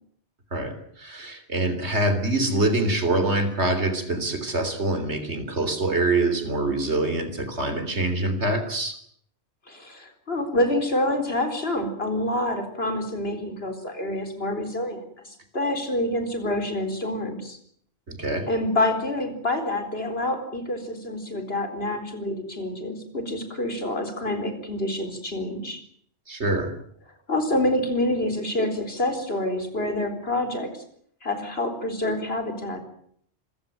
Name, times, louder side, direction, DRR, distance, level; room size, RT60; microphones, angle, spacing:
voice 1, 0.5-9.0 18.1-18.5 26.3-26.7, right 2 dB, 80° right, 9 dB, 3.8 m, -25 dB
voice 2, 9.7-17.6 18.5-25.8 27.3-30.8 31.2-32.8, left 1 dB, 60° left, 6 dB, 4.4 m, -27 dB
26.0 x 16.0 x 9.1 m, 0.66 s
omnidirectional pair, 1.1 m